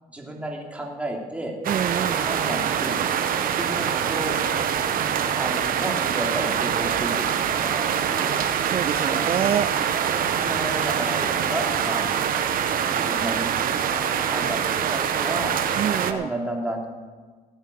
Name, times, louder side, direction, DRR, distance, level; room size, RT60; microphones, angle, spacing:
voice 1, 0.1-1.5 1.9-3.0 3.5-4.3 5.4-8.3 9.0-9.3 10.1-12.2 12.9-13.6 13.9-15.6 16.1-16.9, right 1 dB, 5° right, -1 dB, 2.9 m, -32 dB
sound 1, 1.6-16.1, right 8 dB, 55° right, 1.0 m, -24 dB
voice 2, 1.7-2.2 8.7-9.7 15.8-16.3, right 8 dB, 35° right, 12 dB, 0.4 m, -26 dB
17.5 x 8.1 x 6.6 m, 1.4 s
cardioid pair, 110°, 17 cm